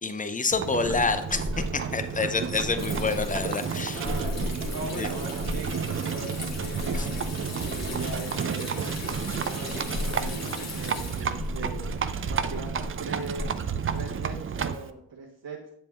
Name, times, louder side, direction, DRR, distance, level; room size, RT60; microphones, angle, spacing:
voice 1, 0.0-4.0 5.0-5.1 7.0-7.1, left 4 dB, 15° left, 9 dB, 0.6 m, -28 dB
Livestock farm animals working animals, 0.5-14.9, right 6 dB, 30° right, 0.4 m, -32 dB
Water tap faucet / Sink (filling or washing), 0.8-13.5, left 2 dB, 35° left, 1.5 m, -36 dB
voice 2, 3.0-3.3 3.7-5.7 6.0-7.1 7.7-8.9 9.5-11.9 12.3-13.4 13.9-15.6, right 3 dB, 45° right, -2 dB, 1.3 m, -40 dB
7.8 x 6.8 x 2.5 m, 0.73 s
supercardioid pair, 65°, 48 cm